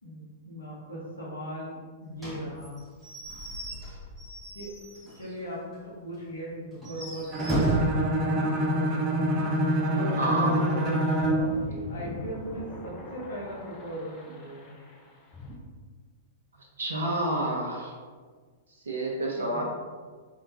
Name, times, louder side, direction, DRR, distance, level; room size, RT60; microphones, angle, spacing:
voice 1, 0.0-2.8 4.5-4.8 5.1-7.3 7.6-9.3 9.9-14.8 19.4-19.6, equal, 80° left, -5 dB, 0.8 m, -38 dB
Slam / Squeak / Wood, 2.2-5.4 5.7-5.8 6.1-6.2 6.7-8.0, right 2 dB, ahead, 1.3 m, -33 dB
Bowed string instrument, 7.3-11.5, right 1 dB, 30° right, 0.7 m, -26 dB
sound 1, 9.7-15.6, left 1 dB, 30° left, 0.5 m, -43 dB
voice 2, 10.2-10.6 16.8-17.9 18.9-19.6, right 1 dB, 75° right, -2 dB, 0.5 m, -28 dB
3.3 x 2.8 x 2.7 m, 1.5 s
figure-of-eight pair, 100°, 0 cm